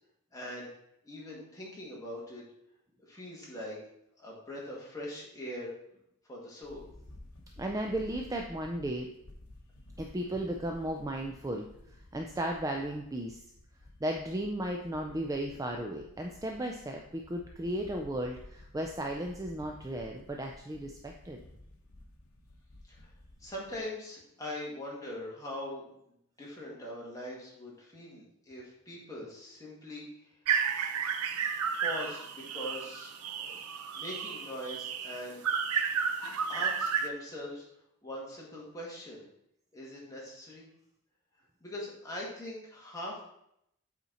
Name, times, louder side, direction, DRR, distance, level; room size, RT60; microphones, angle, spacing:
voice 1, 0.3-0.7 1.0-2.4 3.1-3.8 4.2-5.7 6.3-6.9 22.9-23.1 23.4-25.8 26.4-30.3 31.8-33.6 34.0-35.4 36.5-37.7 38.0-39.2 39.7-40.6 41.6-43.2, left 1 dB, 15° left, -5 dB, 2.0 m, -42 dB
sound 1, 6.6-23.8, left 1 dB, 70° left, 1.0 m, -53 dB
voice 2, 7.6-9.1 10.0-11.7 12.1-13.4 14.0-21.4, right 1 dB, 15° right, 2 dB, 0.4 m, -35 dB
sound 2, 30.5-37.1, right 6 dB, 80° right, 0.6 m, -32 dB
8.2 x 4.3 x 4.1 m, 0.76 s
head